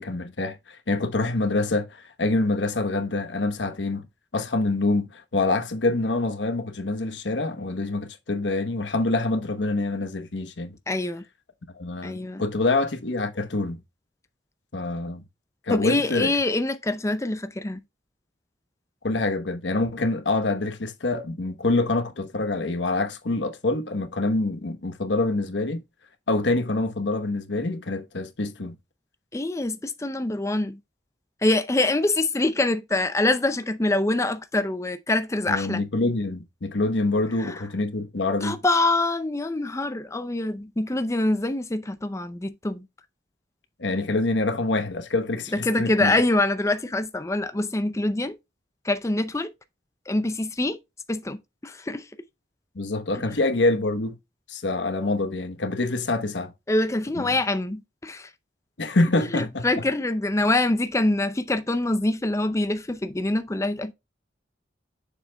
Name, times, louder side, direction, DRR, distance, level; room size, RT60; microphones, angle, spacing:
voice 1, 0.0-4.0 4.3-10.8 11.8-13.8 14.7-15.2 15.6-16.3 19.0-25.8 26.3-28.7 35.5-38.6 43.8-46.2 52.7-54.2 54.5-56.5 57.1-57.4 58.8-59.8, left 2 dB, 90° left, 1.1 m, -26 dB
voice 2, 10.9-11.2 12.0-12.4 15.7-17.8 29.3-30.8 31.4-35.8 37.4-37.6 38.4-42.9 45.5-48.3 48.8-49.5 50.1-50.8 51.1-52.0 56.7-58.3 59.3-63.9, left 2 dB, 15° left, 0.5 m, -25 dB
7.6 x 6.8 x 2.2 m
head